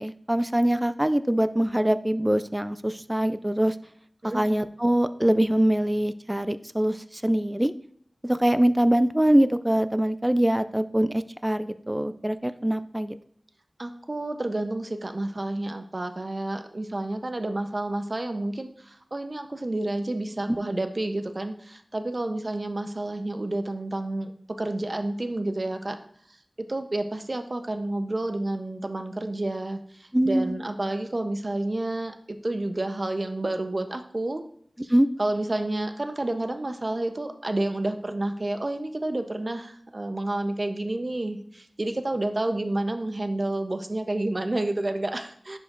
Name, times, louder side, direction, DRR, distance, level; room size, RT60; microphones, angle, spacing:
voice 1, 0.0-3.8 4.2-7.7 8.2-13.2 20.5-20.6 30.1-30.5 34.9-35.1, right 1 dB, 15° right, 12 dB, 0.3 m, -23 dB
voice 2, 13.8-24.3 24.6-26.0 26.7-29.8 30.2-34.4 34.8-34.9 35.2-45.6, right 2 dB, 45° right, 7 dB, 0.7 m, -30 dB
10.5 x 5.0 x 2.5 m, 0.65 s
wide cardioid pair, 60°, 0 cm